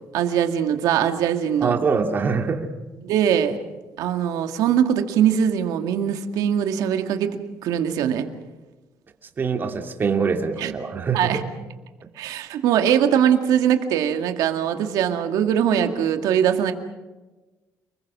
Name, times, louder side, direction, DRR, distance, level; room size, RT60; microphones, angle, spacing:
voice 1, 0.1-1.8 3.0-3.6 4.0-8.3 10.6-10.7 11.1-11.4 12.2-16.7, right 9 dB, 85° right, 6 dB, 2.2 m, -21 dB
voice 2, 1.6-2.7 9.4-11.4, right 5 dB, 35° right, 4 dB, 2.7 m, -24 dB
29.5 x 21.5 x 6.2 m, 1.2 s
cardioid pair, 135°, 6 cm